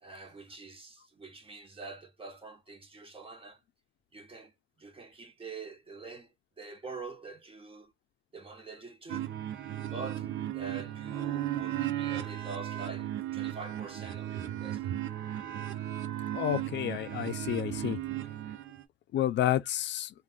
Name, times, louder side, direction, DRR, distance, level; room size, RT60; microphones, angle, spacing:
voice 1, 0.0-3.6 4.1-4.5 4.8-7.9 8.3-9.3 9.8-15.0, right 4 dB, 25° right, 1.2 m, -45 dB
sound 1, 9.1-18.8, right 12 dB, 75° right, 0.7 m, -35 dB
voice 2, 16.3-18.0 19.1-20.1, left 12 dB, 65° left, 0.4 m, -30 dB
3.4 x 2.5 x 2.4 m
cardioid pair, 90°, 20 cm